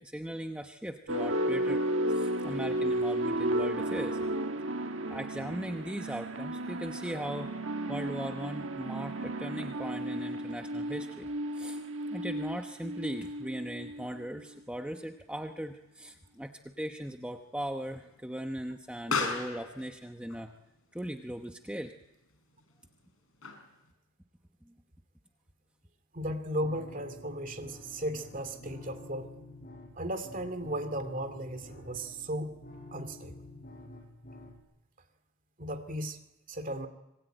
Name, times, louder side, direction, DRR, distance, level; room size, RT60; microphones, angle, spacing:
voice 1, 0.0-4.2 5.1-7.5 7.9-11.3 11.5-11.8 12.0-20.6 20.9-21.9 24.7-24.8, equal, 5° right, 5 dB, 0.9 m, -39 dB
sound 1, 1.1-14.4, right 1 dB, 65° right, 1.4 m, -33 dB
Explosion, 14.9-23.9, left 4 dB, 75° left, 5.7 m, -41 dB
voice 2, 26.1-29.3 30.0-32.5 32.9-33.5 35.6-36.2 36.5-36.9, right 1 dB, 40° right, 9 dB, 2.4 m, -36 dB
sound 2, 26.6-34.6, left 2 dB, 40° left, 6.8 m, -49 dB
26.5 x 20.5 x 9.1 m, 0.95 s
head